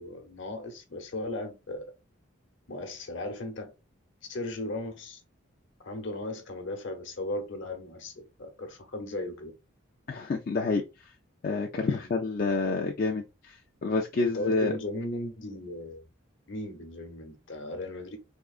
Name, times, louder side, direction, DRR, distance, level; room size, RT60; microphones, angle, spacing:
voice 1, 0.0-1.8 2.7-3.7 4.3-5.2 5.8-9.5 11.9-12.1 14.3-16.1 16.5-18.2, left 1 dB, 65° left, 0.9 m, -36 dB
voice 2, 10.1-11.1 11.4-14.7, left 3 dB, 45° left, 0.4 m, -29 dB
3.6 x 2.8 x 2.4 m
head